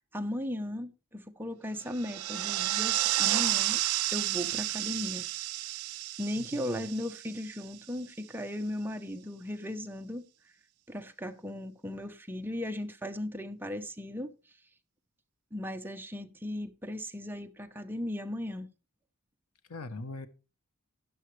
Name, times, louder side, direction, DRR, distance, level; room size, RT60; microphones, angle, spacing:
voice 1, 0.1-3.8 4.1-5.3 6.2-10.2 10.9-14.3 15.5-18.7, left 1 dB, 10° right, 0.9 m, -37 dB
sound 1, 1.9-7.8, right 15 dB, 80° right, 0.5 m, -31 dB
voice 2, 6.4-6.9 19.7-20.3, left 2 dB, 90° left, 1.1 m, -41 dB
12.5 x 10.5 x 3.3 m
head